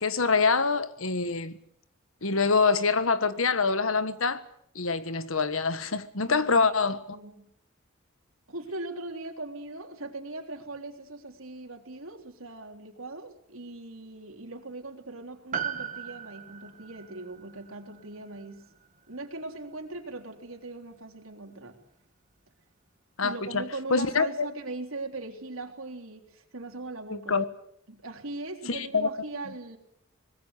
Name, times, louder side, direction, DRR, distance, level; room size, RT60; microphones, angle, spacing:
voice 1, 0.0-1.6 2.2-4.4 4.7-7.2 23.2-23.6 23.9-24.5 27.1-27.4 28.7-29.1, left 4 dB, 75° left, 13 dB, 1.5 m, -25 dB
voice 2, 6.3-6.7 7.1-7.5 8.5-18.6 19.1-21.8 23.2-27.4 27.9-29.8, right 2 dB, 80° right, 4 dB, 3.6 m, -40 dB
Piano, 15.5-20.1 20.4-20.5, right 7 dB, 40° right, 1.6 m, -39 dB
24.0 x 20.5 x 8.3 m, 0.72 s
head